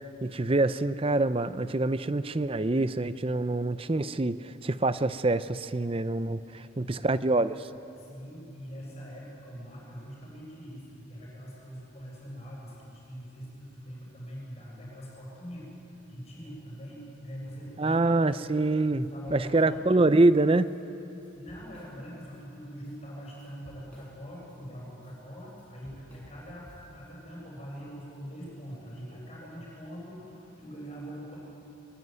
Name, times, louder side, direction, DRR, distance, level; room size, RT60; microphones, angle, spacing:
voice 1, 0.2-7.7 17.8-19.1 19.3-20.7, right 2 dB, 25° right, 14 dB, 0.5 m, -25 dB
voice 2, 6.6-7.1 8.0-18.4 18.9-19.7 21.3-31.4, equal, 30° left, -4 dB, 7.8 m, -43 dB
Drum kit / Drum, 18.5-18.6 18.9-20.2 20.5-20.7 21.1-22.4 22.7-27.1, equal, 5° left, 6.2 m, -54 dB
23.0 x 20.5 x 9.5 m, 2.9 s
head